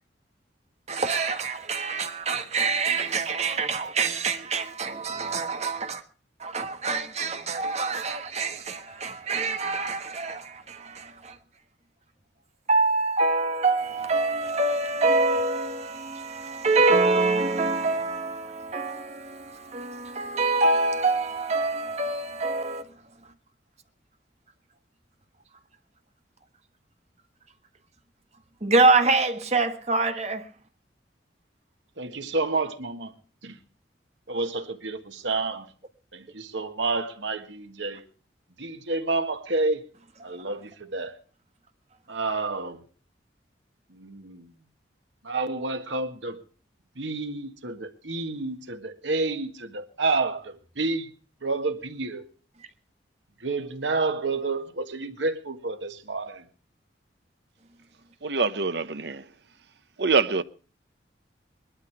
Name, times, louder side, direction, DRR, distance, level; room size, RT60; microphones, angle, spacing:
voice 1, 0.9-6.0 6.4-11.4 12.7-22.9 28.6-30.5, right 3 dB, 35° right, 1.4 m, -25 dB
voice 2, 32.0-33.1 33.4-33.6 34.3-35.7 36.1-38.1 38.6-39.9 40.2-41.2 42.1-42.9 43.9-44.5 45.2-46.4 47.0-51.1 51.4-52.3 53.4-56.5, right 3 dB, 90° right, 1.8 m, -29 dB
voice 3, 58.2-59.2 60.0-60.4, right 4 dB, 70° right, 0.9 m, -24 dB
21.0 x 12.0 x 4.8 m
head